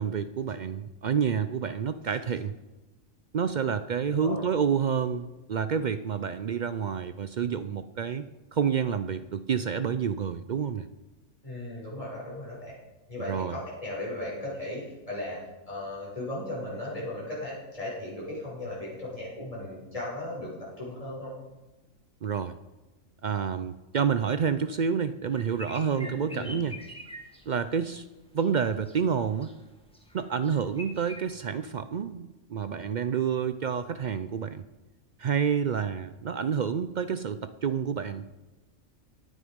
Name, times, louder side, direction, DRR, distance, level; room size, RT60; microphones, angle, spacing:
voice 1, 0.0-2.5 3.3-8.3 8.5-10.9 13.3-13.6 22.2-22.6 23.2-26.8 27.5-28.0 28.3-29.5 30.1-34.6 35.2-38.3, right 7 dB, 85° right, 12 dB, 0.4 m, -29 dB
voice 2, 4.1-4.4 11.4-12.7 13.1-15.4 15.7-21.3 25.9-26.6, left 1 dB, 25° left, -6 dB, 6.2 m, -36 dB
sound 1, 25.3-28.0 28.4-29.6 29.9-31.2, left 1 dB, 5° left, 1.6 m, -45 dB
17.0 x 10.0 x 5.2 m, 1.1 s
omnidirectional pair, 1.5 m